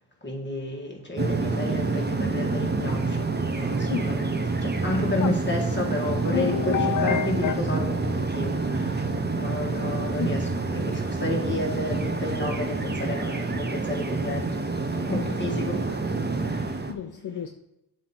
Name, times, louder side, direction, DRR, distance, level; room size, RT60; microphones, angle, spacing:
voice 1, 0.2-4.3 4.6-9.0 9.3-16.1 16.4-16.8, left 2 dB, 25° left, 1.9 m, -31 dB
sound 1, 1.2-16.9, right 3 dB, 25° right, 0.7 m, -27 dB
sound 2, 3.7-10.0, right 4 dB, 85° right, 1.8 m, -49 dB
voice 2, 6.3-7.6 10.2-10.5 16.9-17.5, left 8 dB, 50° left, 0.5 m, -28 dB
7.4 x 2.9 x 5.8 m
wide cardioid pair, 75°, 42 cm